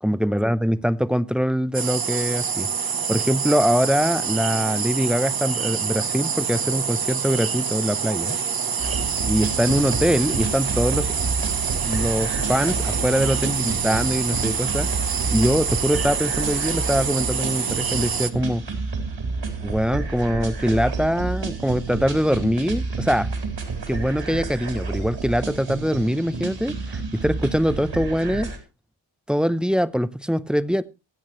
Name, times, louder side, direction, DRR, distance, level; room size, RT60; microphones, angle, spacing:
voice 1, 0.0-2.7 3.1-8.4 9.3-11.1 11.9-18.6 19.6-23.3 23.9-28.5 29.3-30.8, equal, ahead, 0.6 m, -23 dB
sound 1, 1.7-18.3, right 6 dB, 45° right, 1.0 m, -26 dB
sound 2, 8.8-28.6, right 3 dB, 65° right, 4.1 m, -30 dB
24.5 x 8.7 x 3.1 m
wide cardioid pair, 110°, 48 cm